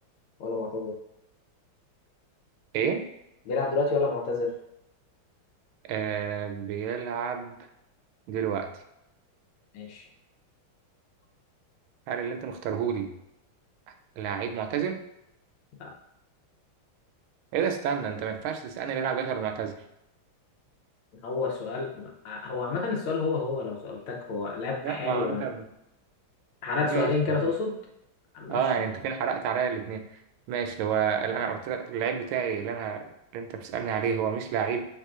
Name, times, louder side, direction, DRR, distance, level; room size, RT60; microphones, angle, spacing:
voice 1, 0.4-1.0 3.5-4.5 9.7-10.1 15.8-15.9 21.2-25.4 26.6-27.8 28.3-28.6, left 4 dB, 80° left, 1 dB, 1.6 m, -29 dB
voice 2, 2.7-3.0 5.8-7.5 8.3-8.7 12.1-13.1 14.2-15.0 17.5-19.7 24.8-25.6 26.8-27.1 27.4-27.5 28.5-30.0 30.5-34.8, right 7 dB, 85° right, 6 dB, 1.4 m, -29 dB
5.4 x 3.6 x 2.4 m, 0.84 s
omnidirectional pair, 2.2 m